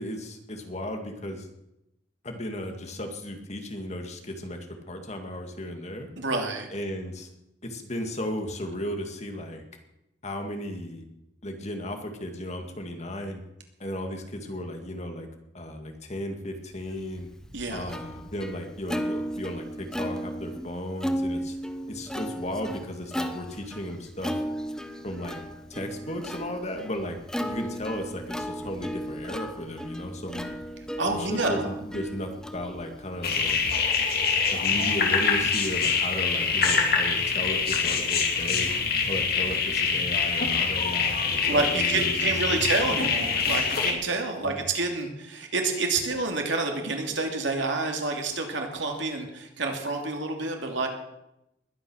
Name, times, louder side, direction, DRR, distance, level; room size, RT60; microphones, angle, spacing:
voice 1, 0.0-1.5 2.2-6.1 6.7-7.3 7.6-9.6 10.2-11.1 11.4-13.4 13.8-15.3 15.5-17.3 17.7-21.6 21.9-24.4 25.0-25.4 25.7-30.6 31.1-33.7 34.5-38.7 39.1-43.3 44.4-44.6, left 1 dB, 35° left, 5 dB, 2.1 m, -35 dB
voice 2, 6.2-6.7 17.5-17.9 31.0-31.7 41.4-50.9, right 3 dB, 75° right, 3 dB, 2.8 m, -28 dB
Plucked string instrument, 17.0-33.7, equal, 5° left, 1.0 m, -35 dB
sound 1, 33.2-43.9, left 5 dB, 55° left, 2.6 m, -25 dB
21.0 x 9.5 x 6.4 m, 0.87 s
head